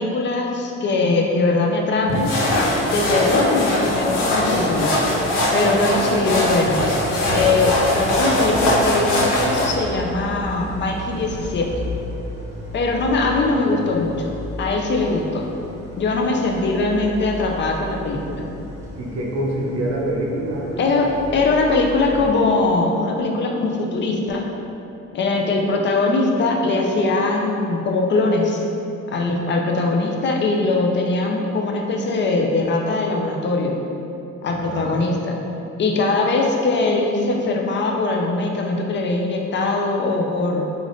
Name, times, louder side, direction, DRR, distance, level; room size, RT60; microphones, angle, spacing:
voice 1, 0.0-2.4 2.9-4.9 5.5-6.9 7.3-11.7 12.7-15.5 16.0-18.5 20.8-24.5 25.1-28.6 29.1-33.8 34.4-35.4 35.8-40.7, left 3 dB, 40° left, 1 dB, 0.4 m, -21 dB
sound 1, 2.1-9.7, left 1 dB, 80° left, 0.6 m, -21 dB
Idling, 7.0-22.3, right 1 dB, 10° right, 0.7 m, -35 dB
voice 2, 19.0-20.9 34.5-35.0, right 1 dB, 60° right, -3 dB, 0.6 m, -26 dB
3.2 x 2.5 x 2.6 m, 2.8 s
cardioid pair, 90°, 30 cm